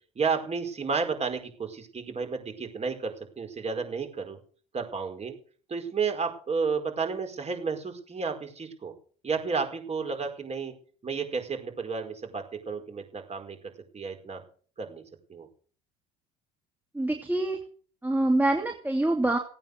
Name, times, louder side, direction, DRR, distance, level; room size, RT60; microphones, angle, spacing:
voice 1, 0.1-4.4 4.7-5.3 5.7-8.9 9.2-10.7 11.0-13.6 13.9-14.4 14.8-15.0 15.3-15.5, right 5 dB, 30° right, 4 dB, 4.8 m, -32 dB
voice 2, 16.9-17.6 18.0-19.4, right 2 dB, 10° right, 2 dB, 2.6 m, -25 dB
16.5 x 9.0 x 6.8 m, 0.43 s
hypercardioid pair, 70°, 21 cm